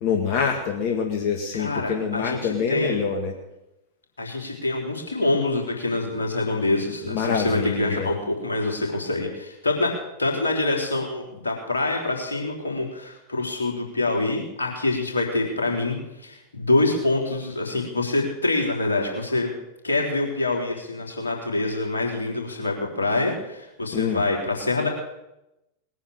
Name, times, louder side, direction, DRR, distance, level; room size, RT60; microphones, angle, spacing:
voice 1, 0.0-3.3 7.0-8.1 23.9-24.3, left 6 dB, 45° left, 2 dB, 2.1 m, -26 dB
voice 2, 1.5-3.0 4.2-9.9 10.2-19.5 19.8-24.9, left 2 dB, 75° left, 0 dB, 3.9 m, -25 dB
20.0 x 9.8 x 6.7 m, 0.92 s
figure-of-eight pair, 90°, 0 cm